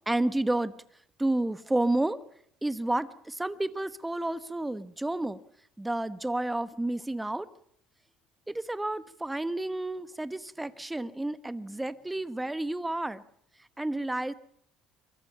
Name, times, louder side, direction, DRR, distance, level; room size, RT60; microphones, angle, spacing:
voice 1, 0.1-0.7 1.2-2.2 2.6-5.4 5.8-7.5 8.5-13.2 13.8-14.3, right 1 dB, 5° right, 14 dB, 1.1 m, -30 dB
25.0 x 23.5 x 5.7 m, 0.68 s
cardioid pair, 140°, 0 cm